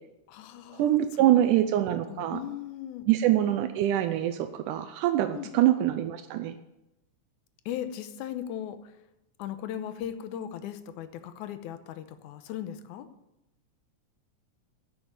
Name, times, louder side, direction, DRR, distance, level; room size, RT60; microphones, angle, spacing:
voice 1, 0.3-1.5 2.1-3.0 5.3-5.5 7.7-9.0 9.4-13.1, left 10 dB, 75° left, 10 dB, 2.3 m, -38 dB
voice 2, 0.8-2.4 3.1-6.5, right 12 dB, 85° right, 9 dB, 2.2 m, -24 dB
11.5 x 6.9 x 8.7 m, 0.90 s
omnidirectional pair, 3.6 m